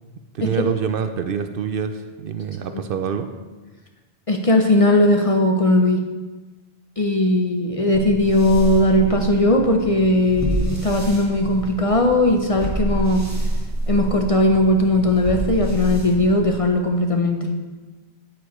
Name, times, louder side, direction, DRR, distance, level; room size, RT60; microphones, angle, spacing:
voice 1, 0.3-3.3, right 7 dB, 65° right, 9 dB, 0.7 m, -26 dB
voice 2, 4.3-6.0 7.0-13.3 13.9-17.5, left 1 dB, 40° left, 3 dB, 0.6 m, -18 dB
sound 1, 7.9-16.9, right 1 dB, 15° right, 1.2 m, -28 dB
9.2 x 8.7 x 3.1 m, 1.3 s
omnidirectional pair, 1.1 m